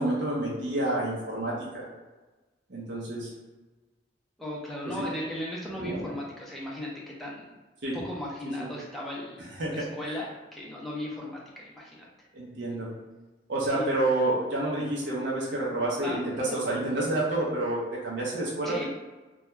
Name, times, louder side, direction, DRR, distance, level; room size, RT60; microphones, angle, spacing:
voice 1, 0.0-1.9 2.7-3.3 4.8-5.1 5.8-6.1 7.8-8.0 8.6-8.7 9.6-9.8 12.3-12.9 13.5-18.9, right 1 dB, 70° right, -5 dB, 0.7 m, -29 dB
voice 2, 4.4-7.5 7.9-9.4 9.7-12.1 13.7-14.0 16.0-16.8 18.6-18.9, left 1 dB, ahead, -5 dB, 0.5 m, -37 dB
2.2 x 2.2 x 3.0 m, 1.2 s
head